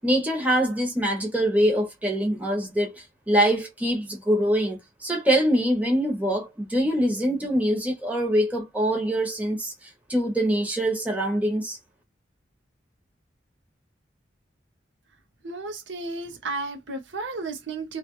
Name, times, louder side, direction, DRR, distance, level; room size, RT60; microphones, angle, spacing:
voice 1, 0.0-9.7 10.1-11.8, equal, 10° right, 1.1 m, -24 dB
voice 2, 15.4-18.0, right 3 dB, 80° right, 0.9 m, -33 dB
3.0 x 2.5 x 3.1 m
head